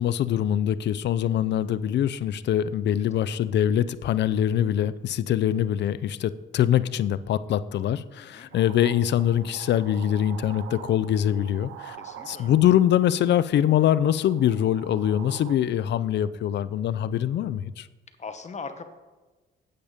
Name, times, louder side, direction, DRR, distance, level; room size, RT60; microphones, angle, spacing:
voice 1, 0.0-12.0 12.3-17.9, left 10 dB, 60° left, 17 dB, 0.5 m, -23 dB
voice 2, 8.2-8.5 12.0-12.5 18.2-18.8, left 5 dB, 35° left, 9 dB, 1.0 m, -39 dB
sound 1, 8.5-15.6, right 9 dB, 85° right, 0.7 m, -45 dB
8.8 x 8.5 x 5.1 m, 1.2 s
cardioid pair, 90°, 20 cm